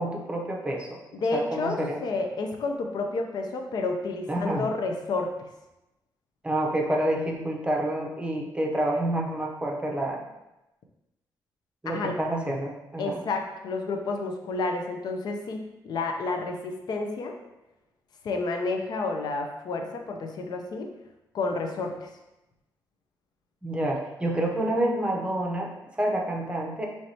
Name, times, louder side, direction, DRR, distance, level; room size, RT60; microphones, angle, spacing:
voice 1, 0.0-1.0 1.3-2.0 4.3-4.7 6.4-10.2 11.8-13.2 23.6-26.9, right 1 dB, 15° right, 0 dB, 0.7 m, -28 dB
voice 2, 1.1-5.5 11.9-12.2 13.0-17.4 18.2-20.9 21.3-22.1, left 3 dB, 60° left, 4 dB, 0.6 m, -30 dB
4.6 x 3.2 x 2.7 m, 0.96 s
cardioid pair, 125°, 8 cm